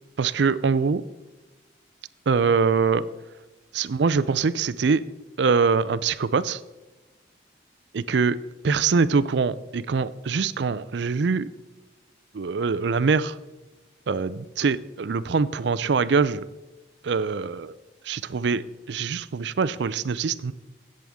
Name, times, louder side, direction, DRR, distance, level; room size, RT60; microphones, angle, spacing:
voice 1, 0.2-1.0 2.3-3.1 3.7-5.0 5.4-6.6 7.9-8.4 8.6-11.5 12.3-13.4 14.1-16.4 17.0-17.7 18.0-20.5, right 5 dB, 75° right, 16 dB, 0.5 m, -23 dB
16.5 x 7.6 x 3.6 m, 1.2 s
head